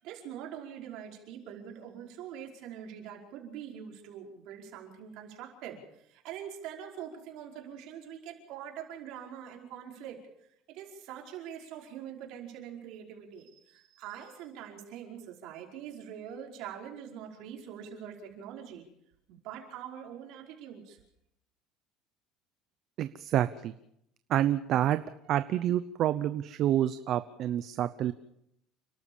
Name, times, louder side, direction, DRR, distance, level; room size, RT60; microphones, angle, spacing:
voice 1, 0.0-10.2 10.7-18.8 19.3-21.0, right 9 dB, 65° right, 1 dB, 5.1 m, -44 dB
voice 2, 23.0-23.7 24.3-25.0 25.3-28.1, right 12 dB, 50° right, 12 dB, 0.8 m, -28 dB
30.0 x 12.5 x 7.2 m, 0.78 s
cardioid pair, 140°, 0 cm